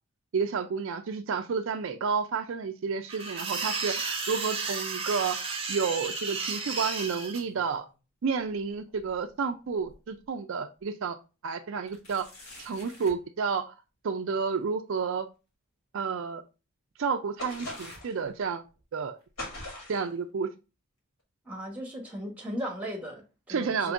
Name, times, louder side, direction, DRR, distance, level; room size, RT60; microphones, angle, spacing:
voice 1, 0.3-7.9 8.2-11.2 11.4-12.3 12.6-13.7 14.0-15.3 15.9-16.4 17.0-18.6 18.9-19.2 19.9-20.5 23.5-23.9, right 5 dB, 60° right, 0.4 m, -30 dB
sound 1, 3.1-7.4, right 4 dB, 25° right, 0.7 m, -33 dB
sound 2, 7.3-8.0 8.4-10.3 10.8-10.9 11.9-13.3 15.0-15.1 16.0-16.1 17.4-18.8 19.2-19.5 20.2-20.3 21.2-21.3, left 1 dB, 90° left, 1.6 m, -53 dB
sound 3, 17.4-18.2 19.4-20.1, left 1 dB, 65° left, 2.4 m, -39 dB
voice 2, 21.4-23.9, equal, 5° right, 1.0 m, -37 dB
5.1 x 3.0 x 2.4 m
head